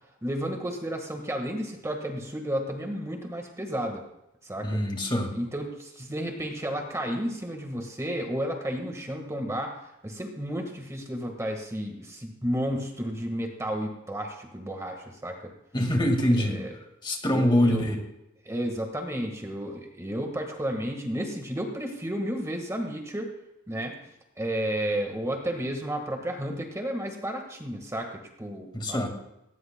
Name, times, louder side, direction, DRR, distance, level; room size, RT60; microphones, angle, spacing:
voice 1, 0.2-4.0 4.4-4.8 5.3-9.8 10.0-15.5 16.3-16.7 17.2-18.0 18.4-23.3 23.7-23.9 24.4-29.1, equal, 15° right, 3 dB, 1.5 m, -32 dB
voice 2, 4.6-5.3 15.7-16.6 17.0-18.0 28.7-29.1, left 1 dB, 20° left, 3 dB, 1.9 m, -24 dB
19.0 x 18.5 x 2.2 m, 0.88 s
head